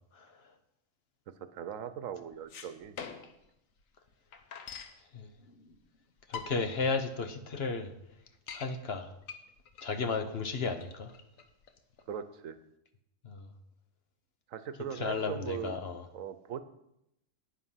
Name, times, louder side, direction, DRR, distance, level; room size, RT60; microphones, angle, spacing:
voice 1, 1.5-3.0 12.1-12.6 14.5-15.8 16.1-16.6, right 8 dB, 75° right, 12 dB, 1.1 m, -39 dB
sound 1, 2.3-3.5 3.8-3.9 4.1-5.0 5.7-5.8 6.2-6.8 7.3-7.4 7.7-7.8 8.1-8.7 9.2-12.1, left 6 dB, 80° left, 1.4 m, -44 dB
voice 2, 6.3-7.9 8.5-9.1 9.8-11.1 13.2-13.5 14.9-16.1, left 4 dB, 50° left, 8 dB, 1.1 m, -34 dB
9.7 x 9.0 x 5.7 m, 0.81 s
omnidirectional pair, 1.4 m